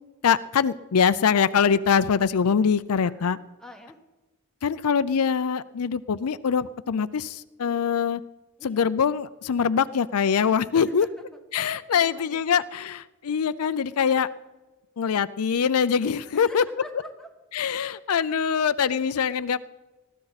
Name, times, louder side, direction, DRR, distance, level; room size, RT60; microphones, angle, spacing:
voice 1, 0.2-3.4 4.6-8.2 8.6-11.1 11.5-14.3 15.0-16.6 17.5-19.6, left 6 dB, 85° left, 15 dB, 0.5 m, -23 dB
voice 2, 3.0-4.0 8.6-8.9 10.7-11.1 11.9-12.6 16.3-17.3, left 1 dB, 5° left, 2 dB, 1.5 m, -45 dB
20.0 x 14.5 x 4.1 m, 1.1 s
head